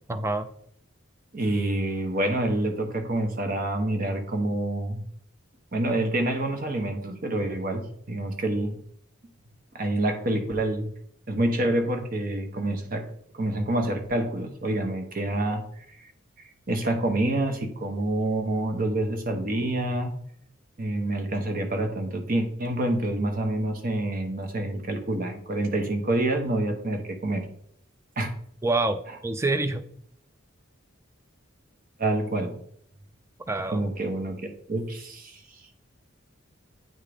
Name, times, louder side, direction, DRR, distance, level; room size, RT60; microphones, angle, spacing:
voice 1, 0.1-0.5 28.6-29.8 33.5-33.8, right 2 dB, 15° right, 10 dB, 0.3 m, -26 dB
voice 2, 1.3-5.0 5.7-8.8 9.7-10.9 11.3-13.0 13.3-16.1 16.7-20.1 20.8-27.5 28.2-28.3 32.0-32.5 33.7-35.4, right 1 dB, 45° right, 6 dB, 0.8 m, -27 dB
8.9 x 3.6 x 3.4 m, 0.67 s
head